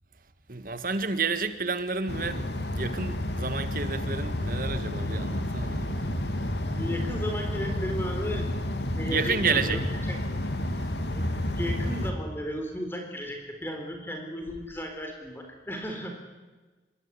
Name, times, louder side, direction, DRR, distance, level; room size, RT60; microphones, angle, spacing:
voice 1, 0.5-2.4 2.8-6.1 9.1-9.8, right 4 dB, 50° right, 1.7 m, -30 dB
sound 1, 2.1-12.1, left 1 dB, 75° left, 2.6 m, -30 dB
voice 2, 6.7-8.5 8.9-10.2 10.8-16.1, equal, 15° left, 3.8 m, -35 dB
25.5 x 23.0 x 9.9 m
head